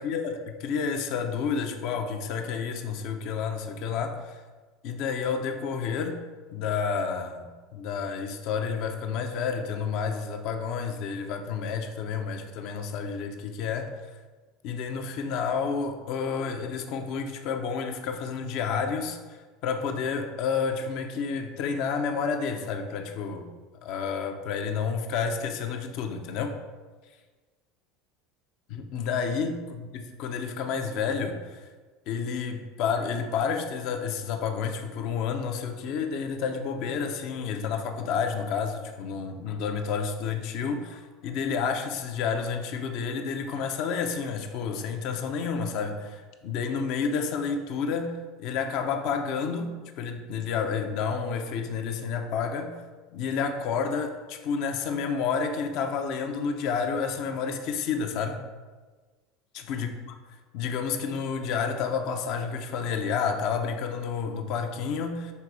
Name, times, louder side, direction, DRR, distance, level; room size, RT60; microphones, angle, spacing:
voice 1, 0.0-4.4 4.8-6.2 6.5-13.9 14.6-23.5 23.8-26.5 28.7-31.6 32.1-52.8 53.1-58.4 59.5-60.1 60.5-65.3, left 6 dB, 55° left, 6 dB, 0.7 m, -30 dB
5.6 x 4.1 x 4.7 m, 1.4 s
figure-of-eight pair, 75°, 0 cm